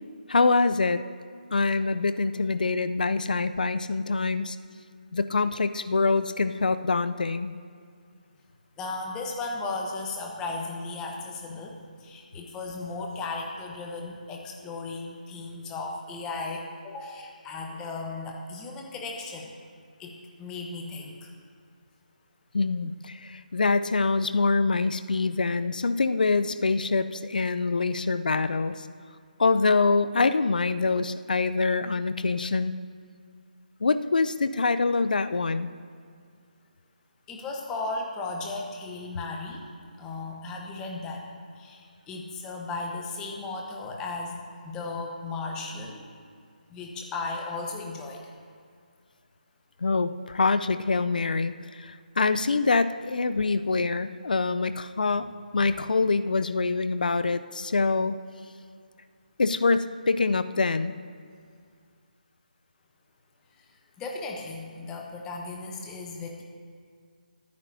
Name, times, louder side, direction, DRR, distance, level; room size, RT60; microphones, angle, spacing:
voice 1, 0.3-1.0 1.5-4.6 5.1-7.5 22.5-28.9 29.4-32.7 33.8-35.7 49.8-58.2 59.4-61.0, left 4 dB, 65° left, 12 dB, 0.5 m, -25 dB
voice 2, 8.8-19.5 20.0-21.3 37.3-39.6 40.0-41.2 41.6-46.1 46.7-48.2 63.6-63.7 64.0-66.4, left 3 dB, 10° left, 0 dB, 1.2 m, -36 dB
23.5 x 9.6 x 2.8 m, 2.2 s
figure-of-eight pair, 155°, 5 cm